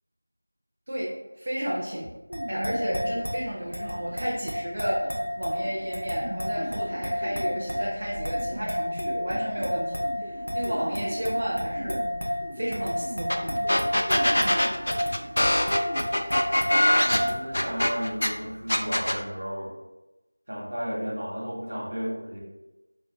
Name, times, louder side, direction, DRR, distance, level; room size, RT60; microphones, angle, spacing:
voice 1, 0.9-2.1 2.5-13.5, equal, 30° right, -7 dB, 0.5 m, -32 dB
sound 1, 2.3-17.3, equal, 80° left, 0.9 m, -31 dB
sound 2, 2.3-16.0, equal, 90° right, 0.5 m, -40 dB
sound 3, 13.3-13.4 13.7-18.3 18.7-19.2, left 1 dB, 45° left, 0.3 m, -23 dB
voice 2, 16.9-19.8 20.5-22.4, equal, 60° right, -2 dB, 1.0 m, -33 dB
3.3 x 2.6 x 2.9 m, 1.1 s
figure-of-eight pair, 180°, 0 cm